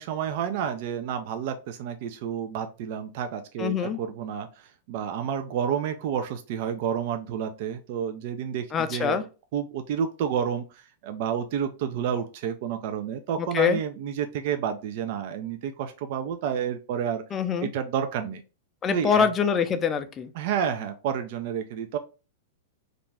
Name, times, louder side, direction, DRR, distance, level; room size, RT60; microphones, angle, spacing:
voice 1, 0.0-9.2 9.5-17.2 17.6-18.4 18.9-19.3 20.4-22.0, right 8 dB, 55° right, 7 dB, 0.4 m, -30 dB
voice 2, 3.6-4.0 8.7-9.2 13.4-13.8 17.3-17.7 18.8-20.3, left 7 dB, 25° left, 8 dB, 0.4 m, -24 dB
2.5 x 2.1 x 3.2 m, 0.32 s
hypercardioid pair, 115°, 0 cm